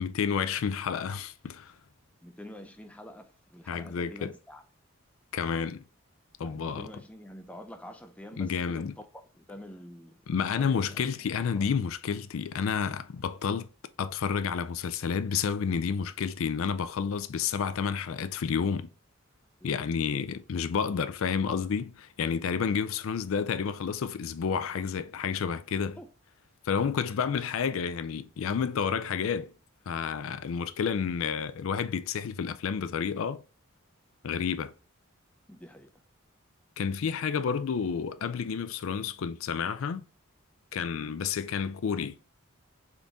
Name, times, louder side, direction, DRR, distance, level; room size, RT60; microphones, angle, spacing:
voice 1, 0.0-1.7 3.7-4.3 5.3-5.8 6.4-6.9 8.4-8.9 10.3-13.7 14.0-18.9 19.6-26.0 26.6-29.5 29.9-33.4 34.2-34.7 36.8-40.0 40.7-42.2, left 6 dB, 70° left, 0.4 m, -30 dB
voice 2, 2.2-4.6 6.4-11.0 11.5-11.8 19.6-19.7 26.0-26.1 35.5-35.9 41.0-41.2, left 1 dB, 5° left, 0.4 m, -47 dB
3.9 x 3.8 x 3.5 m
head